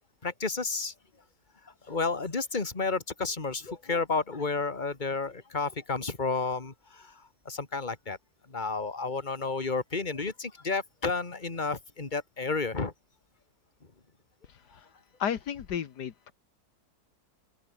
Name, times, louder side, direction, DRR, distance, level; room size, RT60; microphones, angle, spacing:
voice 1, 0.2-0.9 1.6-8.2 8.5-12.9, left 4 dB, 30° left, 2.4 m, -31 dB
voice 2, 15.2-16.3, left 8 dB, 80° left, 1.8 m, -33 dB
open air
omnidirectional pair, 1.7 m